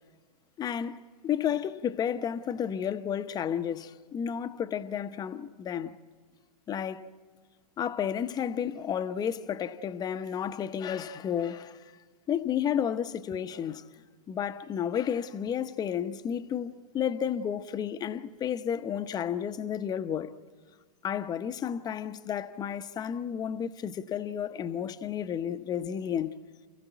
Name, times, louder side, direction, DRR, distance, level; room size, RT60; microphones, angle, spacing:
voice 1, 0.6-1.0 1.2-6.0 6.7-7.1 7.8-11.8 12.3-13.9 14.3-20.3 21.0-26.4, left 8 dB, 20° left, 0.8 m, -32 dB
29.0 x 16.0 x 9.2 m
hypercardioid pair, 120°, 21 cm